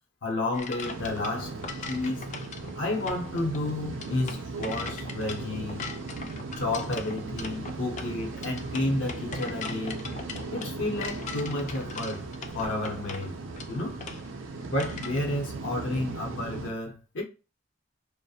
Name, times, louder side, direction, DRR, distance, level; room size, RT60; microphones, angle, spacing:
voice 1, 0.2-2.3 2.8-5.9 6.6-10.0 10.5-12.3 12.5-13.4 13.7-14.0 14.7-17.2, left 2 dB, 75° left, 0.7 m, -31 dB
sound 1, 0.5-15.2, left 5 dB, 40° left, 0.3 m, -41 dB
sound 2, 0.8-16.7, right 3 dB, 85° right, 0.4 m, -38 dB
2.3 x 2.0 x 2.6 m
head